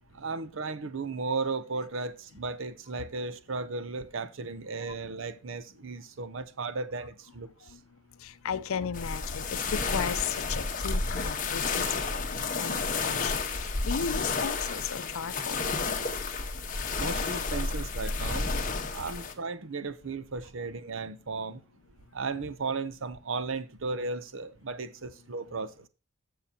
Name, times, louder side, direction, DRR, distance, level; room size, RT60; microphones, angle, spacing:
voice 1, 0.1-7.5 17.0-18.5 18.9-21.6 22.1-25.7, right 4 dB, 70° right, 0.7 m, -35 dB
voice 2, 8.2-12.7 13.0-15.6, left 6 dB, 90° left, 0.5 m, -35 dB
sound 1, 8.9-19.3, left 4 dB, 40° left, 1.2 m, -31 dB
14.0 x 5.8 x 2.9 m
head